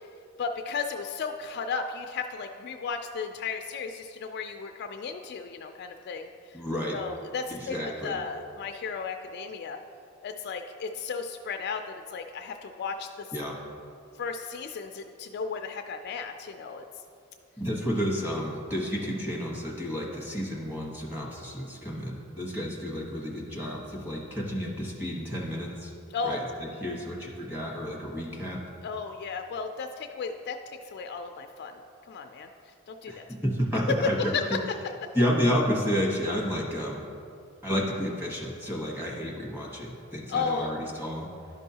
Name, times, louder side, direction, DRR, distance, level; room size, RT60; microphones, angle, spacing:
voice 1, 0.4-6.6 6.9-9.8 10.2-13.3 14.1-16.8 26.1-26.4 28.8-30.6 30.9-31.8 32.1-32.5 32.9-33.2 33.9-34.7 35.0-35.1 40.3-40.7, left 5 dB, 50° left, 5 dB, 0.3 m, -34 dB
voice 2, 6.5-7.0 7.5-8.2 13.3-13.6 17.6-25.9 26.2-26.4 26.8-28.6 33.1-34.4 35.1-37.0 37.6-41.3, equal, 10° right, -2 dB, 1.1 m, -31 dB
11.5 x 5.3 x 2.8 m, 2.5 s
head